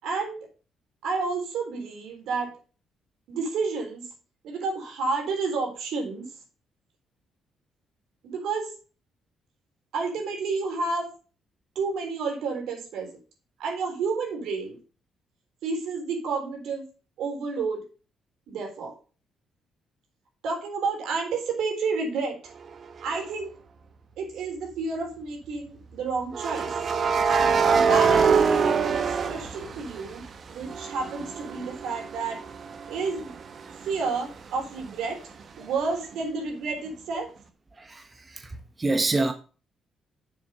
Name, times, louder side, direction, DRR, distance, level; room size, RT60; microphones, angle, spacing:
voice 1, 0.0-0.5 1.0-2.5 3.3-4.1 4.4-6.3 8.2-8.7 9.9-11.1 11.8-13.2 13.6-14.8 15.6-16.9 17.2-17.8 18.5-18.9 20.4-22.4 23.0-23.5 24.2-26.7 27.3-30.2 30.5-32.4 32.9-33.3 33.8-35.2 35.6-37.3, right 4 dB, 80° right, 3.7 m, -30 dB
sound 1, 23.0-23.3 26.3-30.2 30.6-34.2, right 5 dB, 50° right, 1.1 m, -24 dB
voice 2, 37.8-39.3, right 2 dB, 25° right, 1.2 m, -27 dB
7.1 x 7.0 x 5.5 m
cardioid pair, 90°, 0 cm